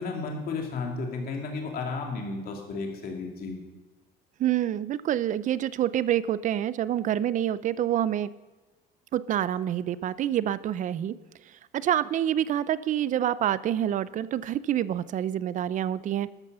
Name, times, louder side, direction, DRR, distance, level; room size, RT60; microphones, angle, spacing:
voice 1, 0.0-3.6, left 4 dB, 45° left, 2 dB, 2.6 m, -33 dB
voice 2, 4.4-8.3 9.1-11.1 11.7-16.3, right 11 dB, 35° right, 18 dB, 0.4 m, -27 dB
13.0 x 9.7 x 6.7 m, 1.2 s
cardioid pair, 165°, 21 cm